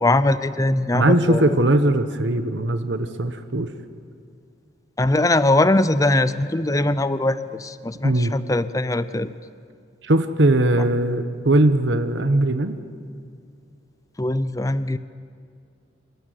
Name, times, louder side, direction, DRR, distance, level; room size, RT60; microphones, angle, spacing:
voice 1, 0.0-1.5 5.0-9.3 14.2-15.0, left 2 dB, 20° left, 14 dB, 0.6 m, -21 dB
voice 2, 0.9-3.7 8.0-8.3 10.0-12.8, right 1 dB, 70° right, 9 dB, 1.1 m, -20 dB
27.0 x 15.0 x 9.4 m, 2.3 s
head